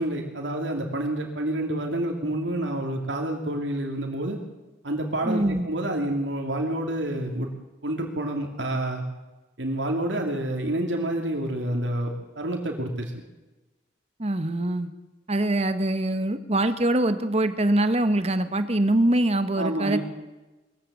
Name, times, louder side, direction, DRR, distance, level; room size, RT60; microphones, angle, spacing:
voice 1, 0.0-4.4 4.8-7.5 7.8-9.0 9.6-13.1 19.6-20.0, right 1 dB, 85° right, 2 dB, 2.7 m, -28 dB
voice 2, 5.2-5.7 14.2-14.9 15.3-20.0, right 1 dB, 35° right, 10 dB, 1.3 m, -23 dB
21.5 x 14.5 x 8.6 m, 1.1 s
head